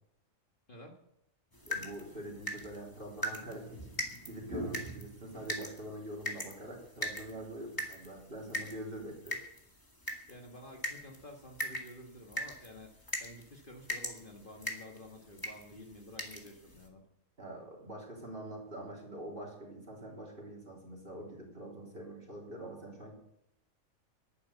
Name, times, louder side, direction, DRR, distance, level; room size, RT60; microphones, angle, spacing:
voice 1, 0.7-1.0 10.3-17.1, left 1 dB, 40° left, 1 dB, 1.9 m, -51 dB
sound 1, 1.5-16.9, equal, 15° left, 2.1 m, -42 dB
voice 2, 1.7-3.9 4.3-9.4 17.4-23.1, right 1 dB, 40° right, -2 dB, 4.0 m, -44 dB
11.0 x 9.7 x 8.2 m, 0.80 s
omnidirectional pair, 1.4 m